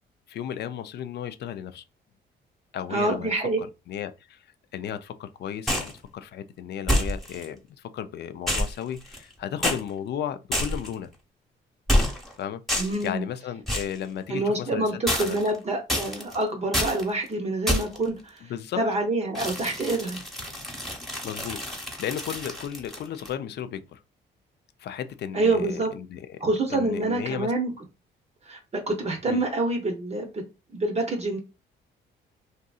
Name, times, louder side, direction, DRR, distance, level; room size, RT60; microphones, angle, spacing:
voice 1, 0.3-1.8 2.7-3.3 3.6-4.4 4.7-7.6 7.9-11.1 12.4-12.6 13.0-15.4 18.5-18.8 21.2-24.0 24.8-26.4 26.7-27.5 29.3-29.4, left 9 dB, 60° left, 0.4 m, -34 dB
voice 2, 2.9-3.6 12.8-13.2 14.3-18.4 18.8-20.2 25.3-25.9 26.4-27.7 28.5-30.4 30.7-31.4, right 2 dB, 35° right, 0.6 m, -26 dB
sound 1, 5.7-6.0 6.9-7.4 8.5-9.3 9.6-9.8 10.5-10.9 11.9-12.3 12.7-13.1 13.7-14.0 15.1-15.5 15.9-16.3 16.7-17.0 17.7-18.0 19.3-23.3, left 1 dB, ahead, 0.9 m, -27 dB
2.7 x 2.5 x 2.3 m
cardioid pair, 90°, 20 cm